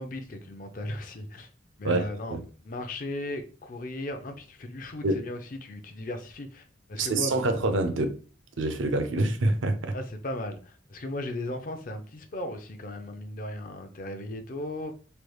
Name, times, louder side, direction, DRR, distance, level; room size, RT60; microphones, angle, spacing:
voice 1, 0.0-1.5 1.8-7.5 9.9-14.9, left 1 dB, 45° left, 0.5 m, -36 dB
voice 2, 1.8-2.4 5.0-5.2 6.9-8.2 8.6-10.0, right 2 dB, 80° right, 0.5 m, -26 dB
3.3 x 3.1 x 2.2 m
head